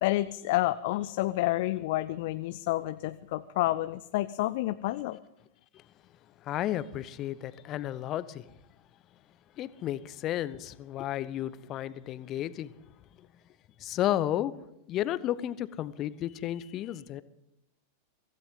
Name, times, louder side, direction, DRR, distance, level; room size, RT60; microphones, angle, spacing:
voice 1, 0.0-5.2, left 17 dB, 50° left, 0.5 m, -29 dB
voice 2, 6.4-8.5 9.6-12.7 13.2-13.3 13.8-14.6 14.9-17.2, left 12 dB, 35° left, 0.9 m, -33 dB
24.0 x 16.0 x 3.8 m
figure-of-eight pair, 90°, 0 cm